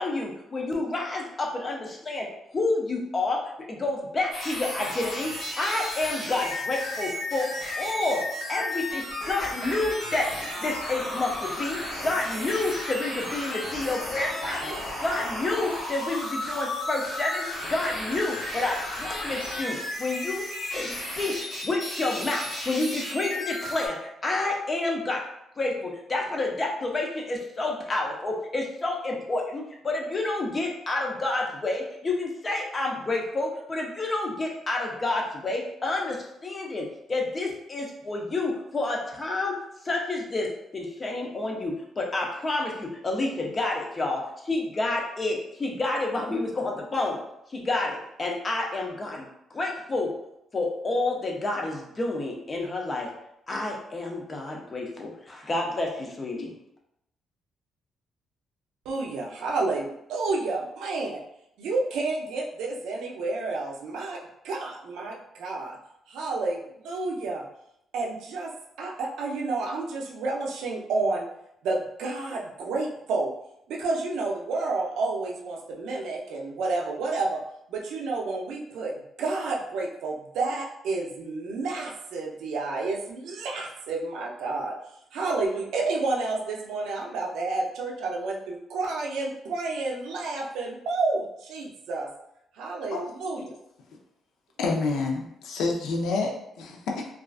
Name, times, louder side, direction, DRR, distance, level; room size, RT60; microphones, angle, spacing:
voice 1, 0.0-2.3 2.5-3.4 3.7-7.5 7.8-8.2 8.5-10.3 10.6-14.8 15.0-20.5 20.7-25.2 25.6-39.6 39.8-47.2 47.5-49.3 49.5-50.1 50.5-53.1 53.5-56.5, left 2 dB, 25° left, 0 dB, 0.5 m, -29 dB
sound 1, 4.3-23.9, left 1 dB, 55° left, 0.9 m, -34 dB
voice 2, 58.9-61.2 61.6-64.2 64.4-65.8 66.1-67.4 67.9-68.5 68.8-71.3 71.6-73.3 73.7-77.4 77.7-84.7 85.1-92.1 92.5-93.5, right 3 dB, 90° right, -1 dB, 0.4 m, -30 dB
voice 3, 94.6-97.1, left 3 dB, 85° left, 1 dB, 0.4 m, -28 dB
2.4 x 2.3 x 2.3 m, 0.80 s
cardioid pair, 145°, 0 cm